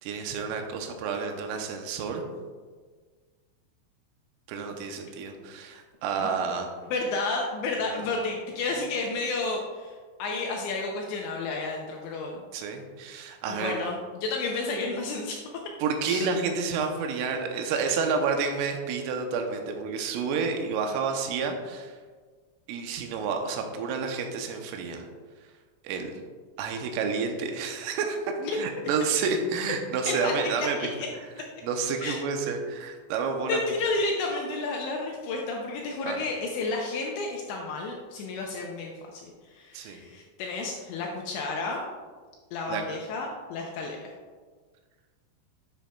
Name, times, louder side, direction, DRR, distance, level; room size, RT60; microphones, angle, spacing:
voice 1, 0.0-2.2 4.5-6.7 12.5-13.7 15.8-21.9 22.7-25.1 25.8-26.1 26.6-30.9 31.6-33.6 36.0-36.2 39.7-40.0 42.7-43.0, right 5 dB, 85° right, 4 dB, 3.3 m, -30 dB
voice 2, 6.9-12.4 13.5-15.4 16.0-16.3 28.4-28.6 30.1-31.1 32.0-32.2 33.5-41.8 42.5-44.0, left 3 dB, 80° left, 0 dB, 2.7 m, -31 dB
10.5 x 7.1 x 2.3 m, 1.5 s
omnidirectional pair, 5.7 m